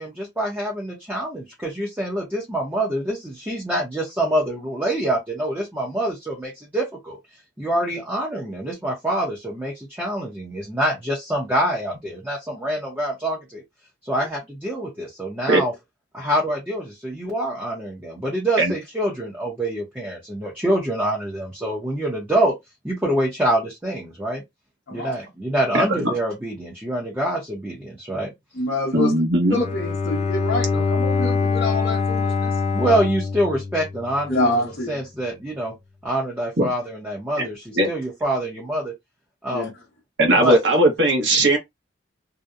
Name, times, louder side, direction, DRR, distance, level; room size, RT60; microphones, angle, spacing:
voice 1, 0.0-7.2 7.6-13.6 14.0-15.7 16.1-22.5 22.8-24.4 24.9-28.3 32.7-35.7 36.0-38.9 39.4-39.7 40.4-40.6, right 1 dB, 10° right, 0.6 m, -25 dB
voice 2, 25.7-26.1 28.9-29.6 36.6-36.7 37.7-37.9 40.2-41.6, right 1 dB, 65° right, 0.8 m, -18 dB
voice 3, 28.5-29.2 29.5-32.6 34.3-35.0 39.5-39.7, left 2 dB, 60° left, 0.8 m, -26 dB
Bowed string instrument, 29.4-34.4, left 4 dB, 35° left, 0.3 m, -24 dB
2.7 x 2.0 x 2.3 m
head